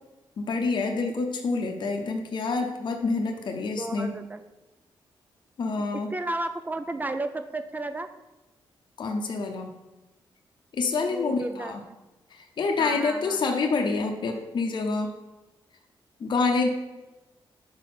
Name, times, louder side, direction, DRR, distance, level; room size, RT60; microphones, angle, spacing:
voice 1, 0.4-4.1 5.6-6.1 9.0-9.7 10.7-11.8 12.3-15.1 16.2-16.7, left 4 dB, 55° left, 3 dB, 0.7 m, -27 dB
voice 2, 3.8-4.4 5.8-8.1 11.1-12.0 12.8-13.5, right 2 dB, 20° right, 9 dB, 0.4 m, -33 dB
4.7 x 4.2 x 5.8 m, 1.1 s
cardioid pair, 85°, 9 cm